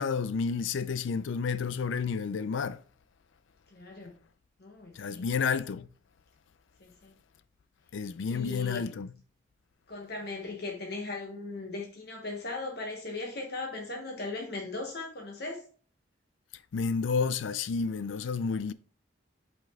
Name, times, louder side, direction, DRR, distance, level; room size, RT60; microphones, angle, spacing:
voice 1, 0.0-2.8 5.0-5.9 7.9-9.1 16.7-18.7, left 5 dB, 75° left, 0.4 m, -30 dB
voice 2, 3.7-4.1 4.6-5.3 6.8-7.1 8.3-8.9 9.9-15.6, left 3 dB, 55° left, 1.1 m, -38 dB
5.8 x 5.4 x 3.5 m
head